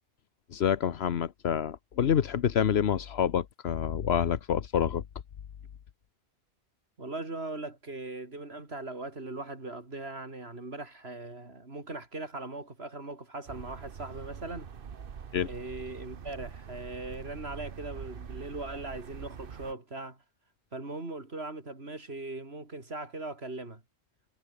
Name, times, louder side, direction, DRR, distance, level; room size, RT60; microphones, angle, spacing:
voice 1, 0.5-5.0 15.3-15.5, left 8 dB, 85° left, 1.2 m, -27 dB
voice 2, 7.0-14.7 15.4-20.2 20.7-23.8, right 2 dB, 85° right, 4.0 m, -40 dB
sound 1, 13.5-19.7, right 7 dB, 60° right, 1.1 m, -44 dB
omnidirectional pair, 1.0 m